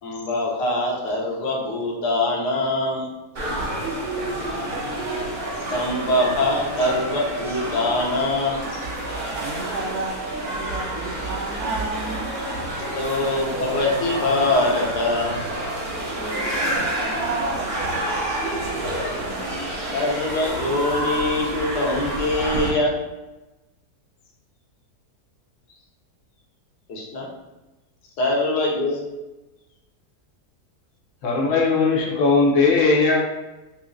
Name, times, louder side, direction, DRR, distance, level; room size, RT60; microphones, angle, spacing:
voice 1, 0.0-3.1 5.6-8.8 12.9-15.4 18.8-18.9 19.9-22.9 26.9-27.3 28.2-29.0, left 2 dB, 85° left, -1 dB, 1.3 m, -23 dB
sound 1, 3.3-22.7, right 1 dB, 35° right, 0.8 m, -28 dB
voice 2, 4.3-4.7 9.3-12.2 15.9-18.1 18.8-19.0, right 3 dB, 75° right, 1 dB, 1.1 m, -33 dB
voice 3, 31.2-33.2, left 3 dB, 60° left, -3 dB, 0.9 m, -18 dB
5.7 x 2.1 x 2.5 m, 1.1 s
omnidirectional pair, 1.7 m